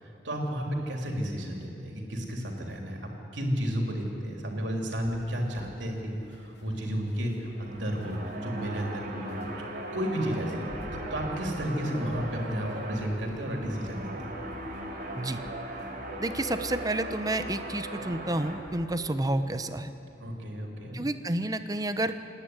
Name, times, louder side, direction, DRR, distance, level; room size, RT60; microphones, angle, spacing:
voice 1, 0.2-9.7 9.9-10.6 11.1-14.1 20.2-21.0, equal, 80° right, 1 dB, 3.3 m, -32 dB
sound 1, 5.0-19.6, right 1 dB, 70° left, 2.5 m, -48 dB
sound 2, 7.5-18.6, right 1 dB, 55° right, 3.6 m, -39 dB
voice 2, 16.2-19.9 20.9-22.2, right 1 dB, 20° right, 10 dB, 0.8 m, -30 dB
27.5 x 10.0 x 9.7 m, 2.7 s
head